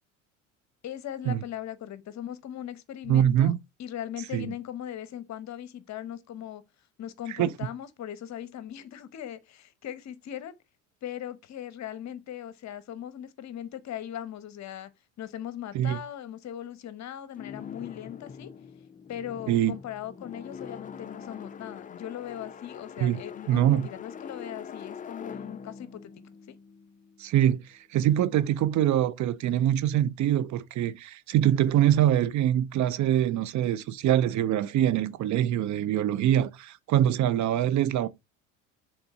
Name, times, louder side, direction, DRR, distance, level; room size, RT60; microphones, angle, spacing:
voice 1, 0.8-3.5 3.8-6.6 7.0-10.6 11.0-14.9 15.2-18.5 19.1-26.1 26.5-26.6, left 10 dB, 45° left, 1.0 m, -39 dB
voice 2, 3.1-3.6 4.3-4.5 7.4-7.5 15.7-16.0 19.5-19.7 23.0-23.2 23.5-23.9 27.2-38.1, right 11 dB, 50° right, 0.7 m, -24 dB
sound 1, 17.3-27.3, left 7 dB, 20° left, 0.5 m, -43 dB
6.8 x 3.8 x 4.0 m
hypercardioid pair, 70°, 38 cm